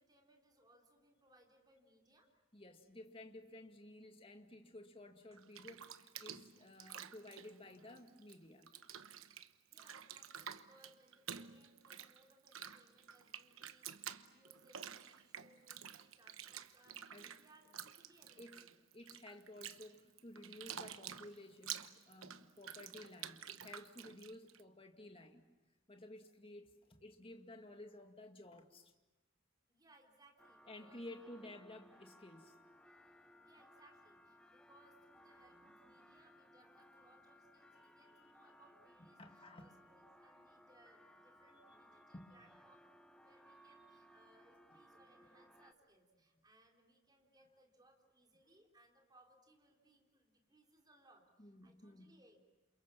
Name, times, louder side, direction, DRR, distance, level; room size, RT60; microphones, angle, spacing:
voice 1, 0.0-2.3 9.7-18.7 29.7-31.4 33.4-52.4, right 1 dB, 20° right, 1 dB, 4.0 m, -69 dB
voice 2, 2.5-8.7 17.1-17.3 18.4-18.6 18.9-25.4 25.9-28.9 30.7-32.6 35.6-35.7 39.0-39.7 42.1-42.3 45.3-45.4 51.4-52.2, left 1 dB, 25° left, 5 dB, 2.1 m, -54 dB
Bathtub (filling or washing), 5.3-8.4 8.6-24.6, right 9 dB, 80° right, 1.1 m, -50 dB
sound 1, 30.4-45.7, equal, 5° left, 1.1 m, -63 dB
29.0 x 27.5 x 7.2 m, 1.1 s
head